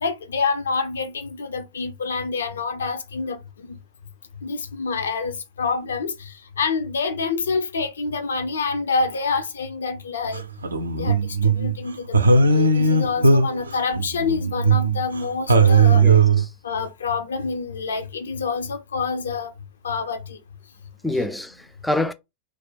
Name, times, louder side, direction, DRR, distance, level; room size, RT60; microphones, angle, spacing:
voice 1, 0.0-3.4 3.7-3.8 4.4-6.1 6.6-10.4 11.0-11.2 11.5-12.1 12.3-16.0 16.6-19.5 19.8-20.4 21.2-21.3, left 4 dB, 70° left, 0.5 m, -27 dB
sound 1, 10.3-11.7 12.1-15.2 15.5-16.4, right 4 dB, 75° right, 0.4 m, -18 dB
voice 2, 15.9-16.5 21.0-22.1, left 1 dB, 5° left, 0.3 m, -27 dB
2.4 x 2.1 x 3.8 m
figure-of-eight pair, 90°, 0 cm